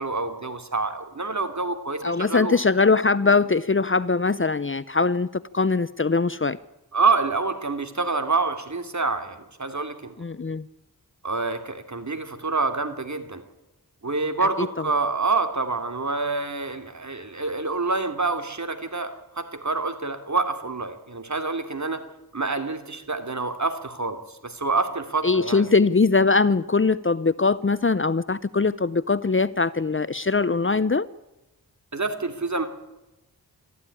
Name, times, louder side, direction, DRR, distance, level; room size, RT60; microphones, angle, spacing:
voice 1, 0.0-2.6 6.9-10.1 11.2-13.4 14.0-22.0 22.3-24.2 24.4-25.7 31.9-32.7, right 3 dB, 45° right, 8 dB, 2.9 m, -27 dB
voice 2, 2.0-6.6 10.2-10.6 14.6-14.7 25.2-31.1, left 4 dB, 35° left, 17 dB, 0.7 m, -21 dB
23.5 x 14.5 x 9.9 m, 1.0 s
wide cardioid pair, 55°, 38 cm